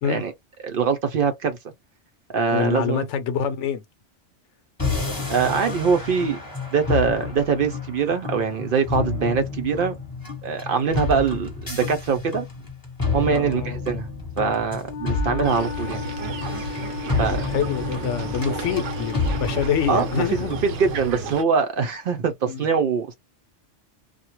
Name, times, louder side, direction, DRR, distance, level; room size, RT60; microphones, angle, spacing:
voice 1, 0.6-1.6 2.3-3.1 5.3-6.4 6.7-10.0 10.4-12.5 13.1-14.1 14.4-16.1 17.2-17.5 19.9-23.2, right 5 dB, 60° right, 0.6 m, -23 dB
voice 2, 2.5-3.8 9.0-9.1 13.3-13.8 17.5-20.6 22.5-22.6, left 7 dB, 80° left, 0.9 m, -26 dB
sound 1, 4.8-21.2, left 4 dB, 20° left, 1.0 m, -30 dB
Wind instrument woodwind instrument, 14.8-20.2, left 6 dB, 50° left, 0.7 m, -35 dB
sound 2, 15.4-21.4, right 5 dB, 85° right, 1.0 m, -33 dB
2.3 x 2.1 x 2.8 m
omnidirectional pair, 1.2 m